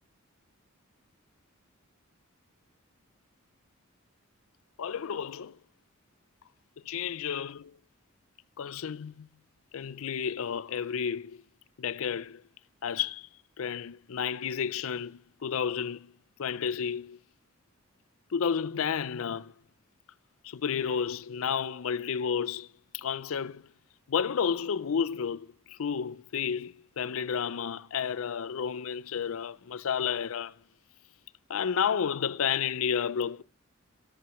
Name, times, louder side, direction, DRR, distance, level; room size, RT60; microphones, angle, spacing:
voice 1, 4.8-5.6 6.8-7.7 8.6-9.3 9.7-11.4 11.8-12.4 12.8-13.3 13.6-16.1 16.4-17.2 18.3-19.5 20.4-22.7 22.9-23.6 24.1-30.5 31.5-33.4, left 7 dB, 70° left, 0.5 m, -31 dB
14.0 x 13.0 x 3.1 m
head